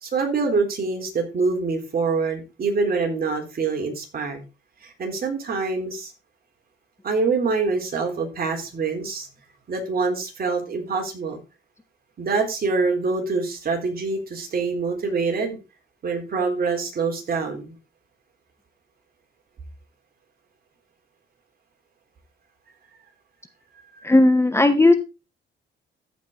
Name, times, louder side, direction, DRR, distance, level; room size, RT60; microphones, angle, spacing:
voice 1, 0.0-4.4 4.8-6.1 7.0-9.3 9.7-11.4 12.2-15.6 16.0-17.7 24.0-24.1, right 4 dB, 50° right, 3 dB, 3.6 m, -25 dB
voice 2, 24.0-24.9, left 2 dB, 15° left, 9 dB, 1.1 m, -15 dB
14.0 x 5.3 x 3.8 m, 0.28 s
cardioid pair, 90°, 20 cm